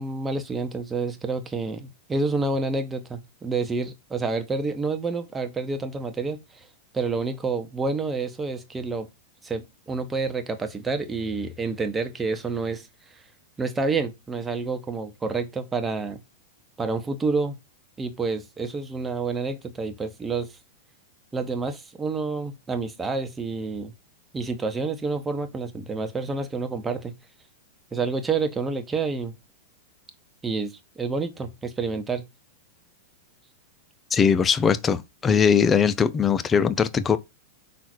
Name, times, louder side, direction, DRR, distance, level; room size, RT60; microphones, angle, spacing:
voice 1, 0.0-6.7 6.9-9.1 9.4-12.9 13.6-16.2 16.8-17.6 18.0-20.5 21.3-23.9 24.3-27.1 27.9-29.3 30.4-32.2, right 4 dB, 15° right, 1.3 m, -28 dB
voice 2, 34.1-37.2, left 6 dB, 20° left, 0.8 m, -20 dB
5.7 x 4.1 x 4.6 m
hypercardioid pair, 100°, 0 cm